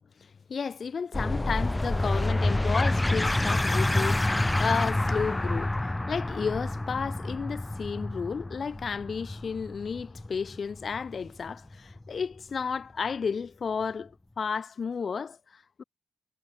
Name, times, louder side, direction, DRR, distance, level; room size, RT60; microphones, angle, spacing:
voice 1, 0.5-15.8, left 6 dB, 50° left, 3.2 m, -32 dB
sound 1, 1.1-12.2, left 1 dB, 15° left, 0.6 m, -28 dB
cardioid pair, 100°, 0 cm